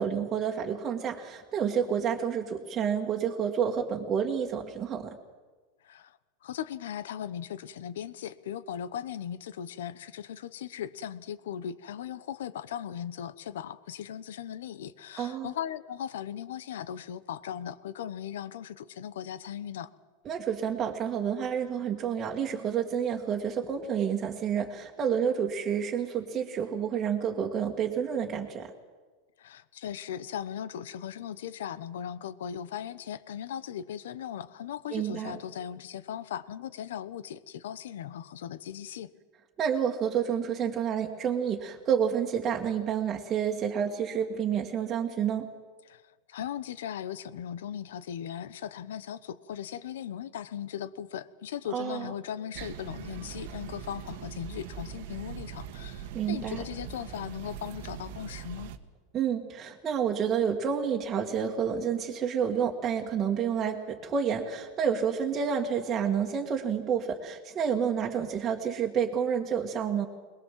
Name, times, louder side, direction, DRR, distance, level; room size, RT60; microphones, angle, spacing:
voice 1, 0.0-5.2 15.2-15.5 20.2-28.7 34.9-35.4 39.6-45.5 51.7-52.1 56.1-56.6 59.1-70.1, right 7 dB, 30° right, 0 dB, 1.8 m, -29 dB
voice 2, 5.8-19.9 29.4-39.1 45.8-58.7, left 9 dB, 90° left, 16 dB, 1.0 m, -38 dB
sound 1, 52.5-58.8, right 8 dB, 70° right, 1.5 m, -42 dB
22.0 x 20.5 x 7.6 m, 1.3 s
supercardioid pair, 135°, 0 cm